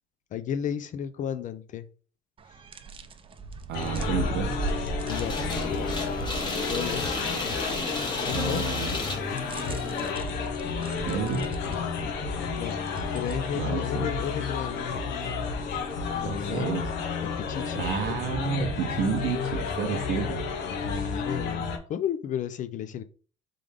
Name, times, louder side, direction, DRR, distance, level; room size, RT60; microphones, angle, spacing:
voice 1, 0.3-1.9 5.1-5.4 6.7-7.2 8.2-8.6 11.7-12.8 13.1-14.8 16.2-16.7 17.2-17.9 20.8-23.0, left 9 dB, 50° left, 11 dB, 0.4 m, -33 dB
sound 1, 2.4-16.5, right 4 dB, 30° right, 0.5 m, -40 dB
sound 2, 3.7-21.8, left 5 dB, 90° left, 0.8 m, -31 dB
voice 2, 3.7-4.6 8.3-9.0 11.1-11.5 13.5-14.1 16.2-16.9 17.8-20.4, right 6 dB, 75° right, 3 dB, 0.8 m, -30 dB
sound 3, 5.1-10.1, left 3 dB, 25° left, 1.2 m, -33 dB
3.7 x 3.3 x 3.5 m, 0.39 s
cardioid pair, 110°, 17 cm